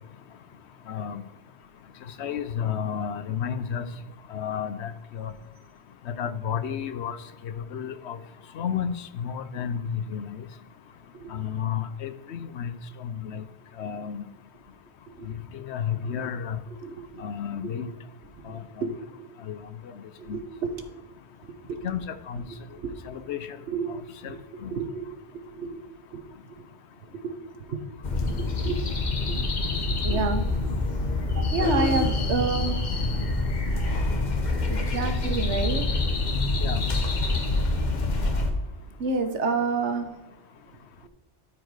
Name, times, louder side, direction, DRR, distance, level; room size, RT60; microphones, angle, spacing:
voice 1, 0.9-1.2 2.2-3.9 4.3-5.3 6.1-7.2 7.4-8.2 8.5-10.4 11.3-12.7 13.0-13.4 13.8-14.2 15.5-16.6 17.2-17.9 18.5-18.9 19.5-19.6 20.3-20.4 21.8-22.4 23.1-23.4 24.2-24.3 24.6-24.7 36.6-36.8, left 8 dB, 75° left, 12 dB, 0.9 m, -32 dB
voice 2, 16.8-17.2 18.4-19.0 20.2-20.7 21.7-21.9 22.8-22.9 23.7-24.0 24.3-24.4 24.7-25.1 25.5-25.8 26.1-26.2 27.2-27.8 28.2-28.4 28.6-28.8 29.3-29.4 29.7-30.5 31.4-32.8 34.7-35.9 39.0-40.1, right 4 dB, 85° right, 7 dB, 1.2 m, -29 dB
sound 1, 28.0-38.5, left 2 dB, 40° left, 1.1 m, -26 dB
13.0 x 4.6 x 4.7 m, 1.1 s
omnidirectional pair, 1.2 m